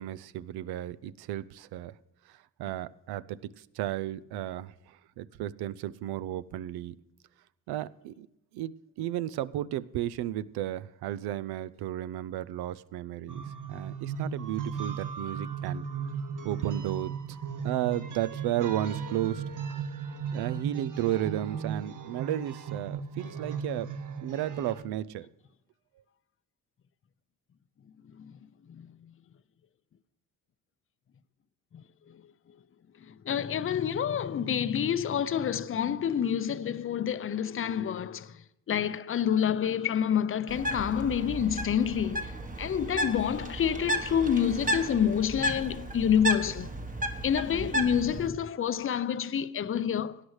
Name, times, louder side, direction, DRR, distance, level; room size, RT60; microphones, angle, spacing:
voice 1, 0.0-1.9 2.6-3.4 3.8-4.7 5.2-6.9 7.7-8.3 8.5-15.9 16.4-17.1 17.6-19.4 20.3-23.9 24.2-25.3, right 13 dB, 85° right, 0.5 m, -33 dB
sound 1, 13.3-24.8, right 6 dB, 55° right, 1.0 m, -36 dB
voice 2, 33.1-38.3 38.7-42.3 42.6-46.7 47.2-50.2, left 8 dB, 35° left, 0.5 m, -28 dB
Bird, 40.5-48.3, equal, 20° right, 1.1 m, -33 dB
17.0 x 9.9 x 3.2 m
supercardioid pair, 60°, 38 cm